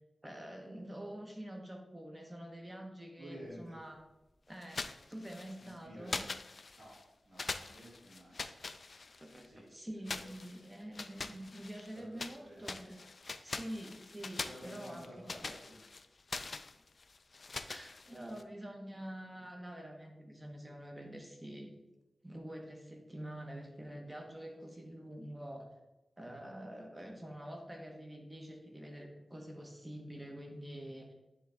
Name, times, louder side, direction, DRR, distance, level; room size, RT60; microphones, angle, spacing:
voice 1, 0.2-4.0 4.5-6.3 9.2-13.0 13.4-15.3 17.7-21.7 22.2-25.7 26.2-31.1, right 1 dB, 15° right, 1 dB, 1.0 m, -46 dB
voice 2, 3.2-3.8 5.6-6.1 6.8-6.9 7.3-8.4 9.4-9.6 9.9-10.0 10.4-10.6 11.9-12.7 14.4-15.8 24.7-24.8, equal, 55° right, -9 dB, 2.1 m, -52 dB
sound 1, 4.6-5.7 6.1-7.0 7.4-9.5 10.0-12.4 12.6-18.4, left 3 dB, 45° left, 0.3 m, -43 dB
9.4 x 3.8 x 3.5 m, 1.0 s
wide cardioid pair, 145°, 0 cm